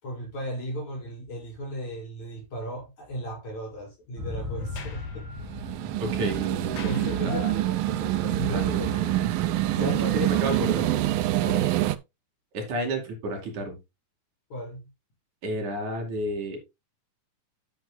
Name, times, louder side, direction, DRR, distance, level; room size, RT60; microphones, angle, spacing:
voice 1, 0.0-5.3 6.8-9.1 9.7-10.3 11.4-11.8 14.5-14.9, equal, 55° left, 6.8 m, -36 dB
sound 1, 4.2-9.8, left 3 dB, 25° right, 3.6 m, -39 dB
Sliding door, 4.6-7.8, left 6 dB, 85° left, 3.5 m, -48 dB
sound 2, 5.4-12.0, right 15 dB, 90° right, 2.4 m, -26 dB
voice 2, 6.0-7.5 8.5-8.9 9.8-11.2 12.5-13.8 15.4-16.6, right 1 dB, 60° right, 3.9 m, -31 dB
10.0 x 9.7 x 2.3 m
omnidirectional pair, 3.9 m